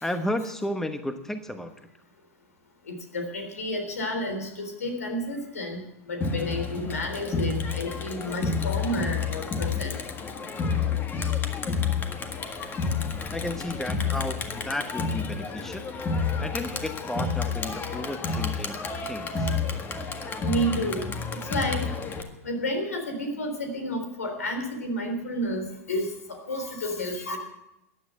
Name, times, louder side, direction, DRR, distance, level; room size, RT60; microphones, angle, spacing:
voice 1, 0.0-1.9 13.3-15.9 16.4-19.5, left 1 dB, 5° left, 8 dB, 1.1 m, -33 dB
voice 2, 2.9-10.0 20.4-21.1 21.4-22.0 22.4-27.4, equal, 85° left, 5 dB, 3.6 m, -31 dB
Crowd, 6.2-22.2, left 5 dB, 25° left, 1.7 m, -30 dB
14.5 x 9.8 x 7.6 m, 0.86 s
hypercardioid pair, 105°, 8 cm